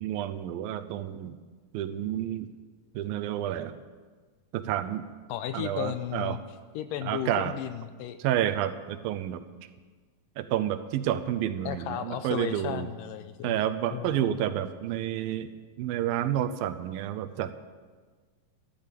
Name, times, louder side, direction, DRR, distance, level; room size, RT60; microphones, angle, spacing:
voice 1, 0.0-1.4 1.7-2.5 2.9-3.8 4.5-5.0 5.5-6.4 7.0-7.5 8.2-9.4 10.4-12.9 13.4-17.5, right 11 dB, 80° right, 11 dB, 2.5 m, -30 dB
voice 2, 5.3-6.4 6.7-8.2 11.7-13.6 13.9-14.4, left 11 dB, 80° left, 11 dB, 2.1 m, -34 dB
14.0 x 12.0 x 7.5 m, 1.4 s
omnidirectional pair, 4.2 m